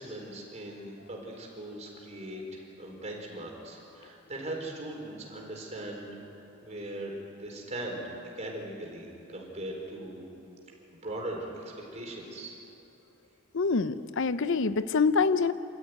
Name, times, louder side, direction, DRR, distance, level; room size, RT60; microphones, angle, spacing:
voice 1, 0.0-6.2 6.6-7.1 7.4-8.0 8.4-9.1 9.3-10.2 10.9-12.5, right 1 dB, 35° right, -1 dB, 4.5 m, -39 dB
voice 2, 13.5-15.5, left 4 dB, 65° left, 13 dB, 0.6 m, -25 dB
27.0 x 13.5 x 9.5 m, 3.0 s
head